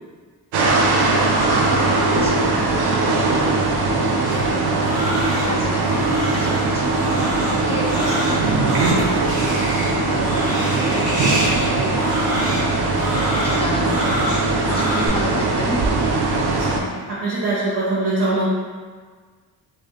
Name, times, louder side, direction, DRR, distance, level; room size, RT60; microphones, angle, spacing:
sound 1, 0.5-16.8, right 3 dB, 85° right, 0.6 m, -20 dB
voice 1, 1.2-6.1 6.3-8.8 9.4-15.8, left 2 dB, 15° left, -2 dB, 0.3 m, -33 dB
Crying sobbing, 4.2-15.1, equal, 40° left, 1.2 m, -28 dB
voice 2, 17.1-18.6, right 2 dB, 55° right, -10 dB, 0.9 m, -22 dB
3.3 x 2.7 x 2.9 m, 1.5 s
wide cardioid pair, 175°, 38 cm